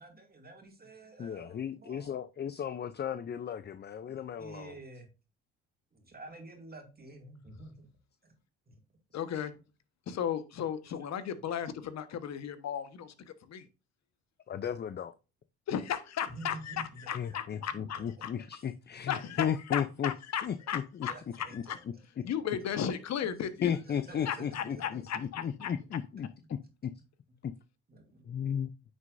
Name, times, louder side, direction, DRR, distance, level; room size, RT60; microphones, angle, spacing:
voice 1, 0.0-2.1 4.0-5.1 5.9-7.9 8.2-8.4 8.7-8.8 10.6-11.1 11.8-11.9 16.3-17.1 17.5-18.0 20.7-21.8 22.7-22.8 23.9-25.3 27.9-28.3, right 2 dB, 30° right, 3 dB, 2.6 m, -50 dB
voice 2, 1.2-4.8 14.5-15.1 17.1-20.1 20.4-21.1 21.4-21.9 23.6-26.9 27.4-27.5 28.2-28.7, left 8 dB, 35° left, 12 dB, 0.6 m, -35 dB
voice 3, 9.1-9.5 10.1-13.1 13.5-13.6 15.7-16.7 17.1-18.3 19.1-19.5 19.7-21.1 21.7-21.8 22.2-23.7 24.3-25.7, left 9 dB, 60° left, 12 dB, 1.3 m, -35 dB
9.0 x 6.5 x 2.6 m, 0.30 s
supercardioid pair, 75°, 31 cm